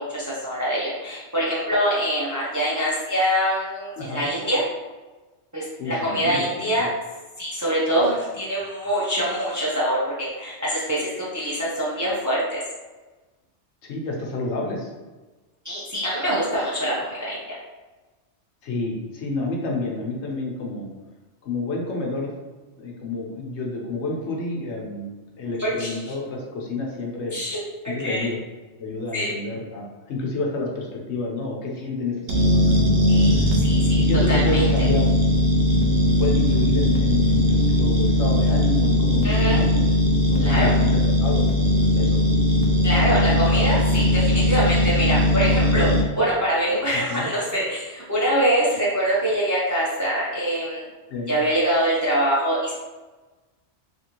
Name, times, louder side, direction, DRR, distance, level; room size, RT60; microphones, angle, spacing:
voice 1, 0.0-4.6 5.5-6.9 7.4-12.6 15.6-17.6 25.6-26.1 27.3-27.6 27.8-28.3 29.1-29.3 33.1-33.3 33.6-34.0 34.3-34.6 39.2-39.6 40.4-40.7 42.8-45.9 46.2-50.9 51.3-52.7, equal, 20° right, -7 dB, 0.5 m, -24 dB
voice 2, 4.0-4.3 5.8-6.9 13.8-14.9 18.6-20.9 21.4-22.3 22.7-25.1 25.4-27.4 27.9-28.4 28.8-33.0 33.3-33.5 34.0-35.1 36.2-40.9 41.2-41.4 41.9-42.2 46.9-47.3 51.1-51.3, left 2 dB, 75° left, -1 dB, 1.0 m, -29 dB
sound 1, 32.3-46.0, left 1 dB, 75° right, 0.9 m, -19 dB
3.0 x 2.5 x 2.9 m, 1.2 s
omnidirectional pair, 1.2 m